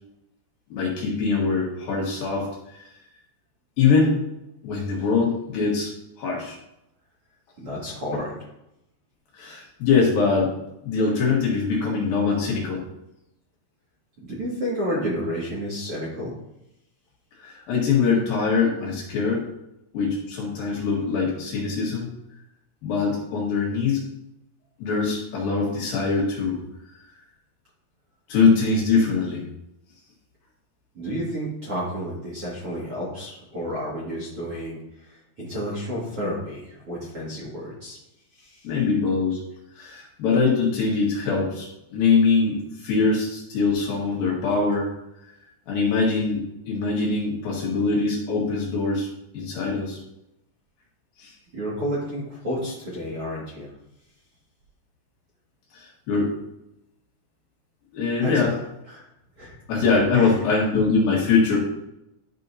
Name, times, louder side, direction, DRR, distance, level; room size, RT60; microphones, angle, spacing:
voice 1, 0.7-2.5 3.8-4.2 4.6-5.9 6.2-6.6 9.4-10.5 10.8-12.8 17.4-19.5 19.9-22.1 22.8-24.0 24.8-26.6 28.3-29.4 38.6-39.4 39.8-44.9 45.7-49.1 49.3-50.0 51.2-51.3 55.7-56.3 57.9-58.5 59.7-61.6, left 4 dB, 65° left, -3 dB, 3.1 m, -23 dB
voice 2, 7.6-8.3 14.2-16.3 30.9-38.0 38.3-38.7 51.5-53.7 58.2-58.5 58.9-59.0 59.4-59.5 60.1-60.3, equal, 40° right, -7 dB, 2.2 m, -31 dB
12.0 x 5.5 x 2.8 m, 0.85 s
omnidirectional pair, 5.0 m